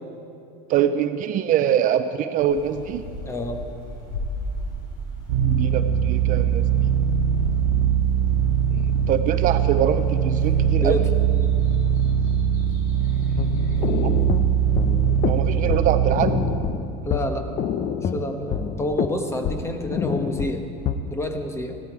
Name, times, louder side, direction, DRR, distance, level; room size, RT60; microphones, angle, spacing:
voice 1, 0.7-3.0 5.4-6.9 8.7-11.0 14.0-14.1 15.3-16.4, right 10 dB, 45° right, 10 dB, 0.6 m, -24 dB
sound 1, 2.4-15.8, equal, 70° left, 4.4 m, -38 dB
voice 2, 3.2-3.6 10.8-11.1 17.0-17.5 18.0-20.6 21.0-21.8, left 1 dB, 15° left, 6 dB, 1.2 m, -28 dB
sound 2, 5.3-16.2, right 8 dB, 80° right, 1.3 m, -21 dB
sound 3, 13.4-20.9, left 7 dB, 40° left, 0.7 m, -28 dB
16.5 x 13.0 x 4.9 m, 2.6 s
supercardioid pair, 120°, 19 cm